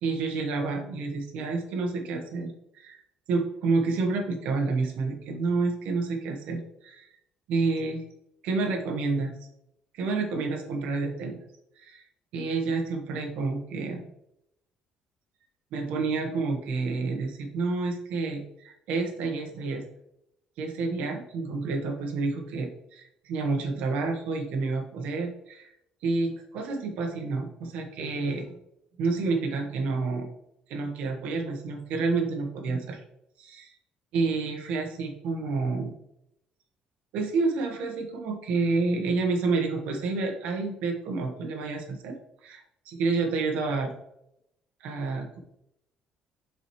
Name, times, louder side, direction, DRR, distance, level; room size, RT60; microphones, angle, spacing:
voice 1, 0.0-3.0 3.3-7.1 7.5-8.0 8.4-9.3 9.9-11.4 11.8-12.0 12.3-14.1 15.7-19.8 20.6-25.7 26.0-28.6 29.0-30.3 30.7-33.0 33.4-33.7 34.1-35.9 37.1-42.2 42.4-43.9 44.8-45.4, right 3 dB, 80° right, 4 dB, 1.3 m, -29 dB
7.0 x 5.0 x 3.2 m, 0.80 s
cardioid pair, 160°, 2 cm